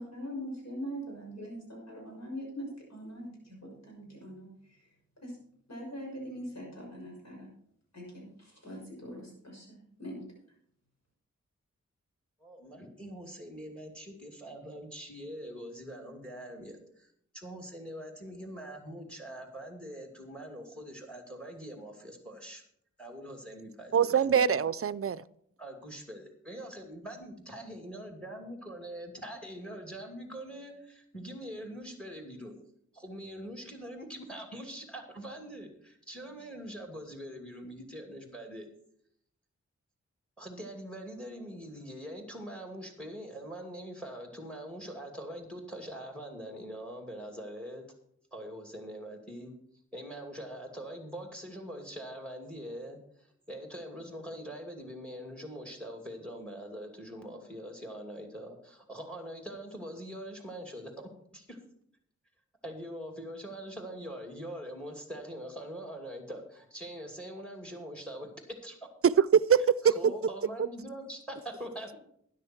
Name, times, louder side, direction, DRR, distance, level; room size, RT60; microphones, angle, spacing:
voice 1, 0.0-4.5 5.2-5.3 5.7-7.5 7.9-10.3, equal, 65° left, 6.2 m, -42 dB
voice 2, 12.4-17.1 17.3-22.6 23.0-24.4 25.6-32.6 32.9-38.7 40.4-47.8 48.3-49.5 49.9-61.6 62.6-68.8 69.8-72.0, equal, 5° left, 2.6 m, -43 dB
voice 3, 23.9-25.2 69.0-70.1, right 7 dB, 50° right, 0.5 m, -23 dB
12.5 x 10.5 x 4.5 m
wide cardioid pair, 75°, 29 cm